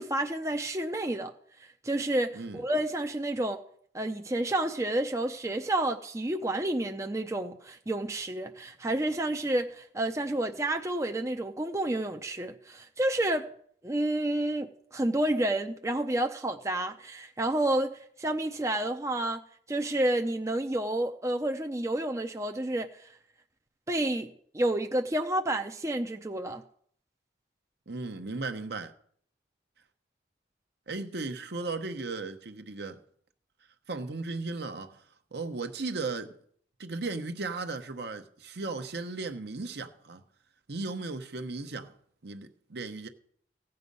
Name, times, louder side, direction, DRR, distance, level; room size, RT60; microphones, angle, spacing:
voice 1, 0.0-1.3 1.6-3.6 3.9-13.5 13.8-19.4 19.7-23.1 23.9-26.6, right 1 dB, 15° right, 0.5 m, -30 dB
voice 2, 27.9-28.9 30.9-33.0 33.9-35.0 35.3-36.4 36.8-40.2 40.7-41.9 42.2-43.1, right 3 dB, 60° right, 1.0 m, -36 dB
16.0 x 7.8 x 5.4 m
head